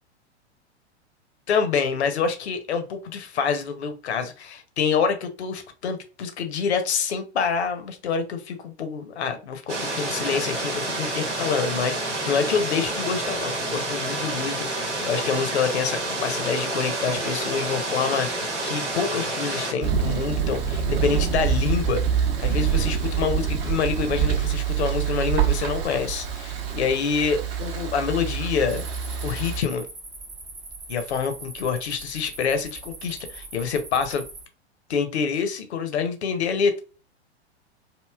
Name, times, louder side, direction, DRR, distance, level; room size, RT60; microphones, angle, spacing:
voice 1, 1.5-28.9 29.2-29.8 30.9-34.2 34.9-36.8, left 6 dB, 70° left, 7 dB, 0.7 m, -27 dB
sound 1, 9.7-19.7, right 2 dB, 90° right, 1.0 m, -29 dB
Thunder, 19.8-29.6, right 8 dB, 55° right, 0.8 m, -25 dB
sound 2, 28.7-34.5, right 3 dB, 10° right, 0.4 m, -41 dB
3.0 x 2.7 x 2.2 m, 0.33 s
figure-of-eight pair, 100°, 34 cm